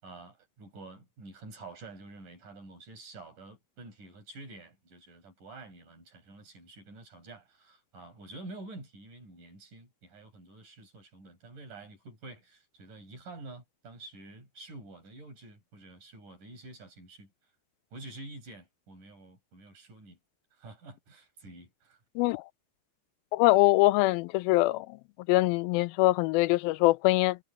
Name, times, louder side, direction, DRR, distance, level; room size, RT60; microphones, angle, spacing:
voice 1, 0.0-17.3 17.9-20.2 20.6-22.0, right 2 dB, 60° right, 8.6 m, -48 dB
voice 2, 23.3-24.9 25.3-27.4, left 19 dB, 90° left, 2.4 m, -23 dB
omnidirectional pair, 4.2 m